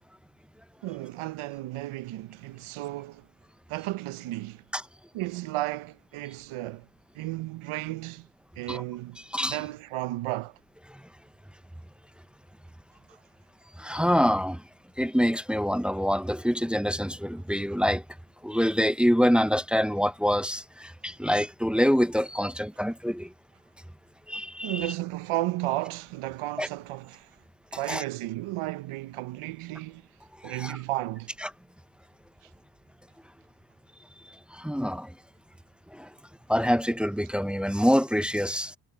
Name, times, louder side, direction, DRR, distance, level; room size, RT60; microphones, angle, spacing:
voice 1, 0.8-3.3 3.7-4.6 5.1-6.9 7.1-8.3 8.6-9.2 9.5-10.6 24.6-27.3 27.7-30.0 30.4-31.3, right 17 dB, 80° right, 0.8 m, -33 dB
voice 2, 9.3-9.6 10.9-11.0 13.8-14.6 15.0-18.0 18.4-23.3 24.3-24.9 26.6-26.7 27.9-28.0 30.4-30.8 31.4-31.5 34.3-35.1 35.9-36.1 36.5-38.8, equal, ahead, 0.4 m, -26 dB
cardioid pair, 75°, 49 cm